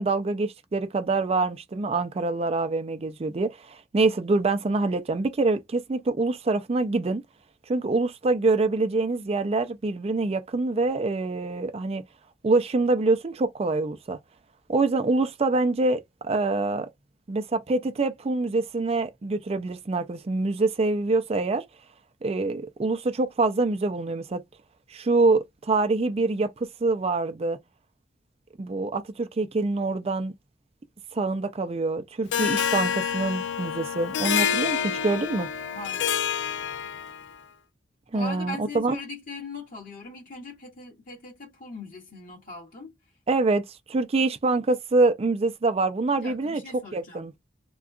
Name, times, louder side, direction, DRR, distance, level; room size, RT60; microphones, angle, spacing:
voice 1, 0.0-7.2 7.7-12.0 12.4-14.2 14.7-16.9 17.3-21.6 22.2-24.4 24.9-26.5 26.8-27.6 28.6-30.3 31.1-35.5 38.1-39.0 43.3-46.6 46.9-47.3, right 3 dB, 35° right, 0.4 m, -25 dB
Harp, 32.3-37.3, left 8 dB, 70° left, 0.4 m, -27 dB
voice 2, 35.7-36.3 38.1-42.9 46.1-47.2, left 3 dB, 50° left, 1.8 m, -40 dB
3.6 x 2.3 x 2.4 m
head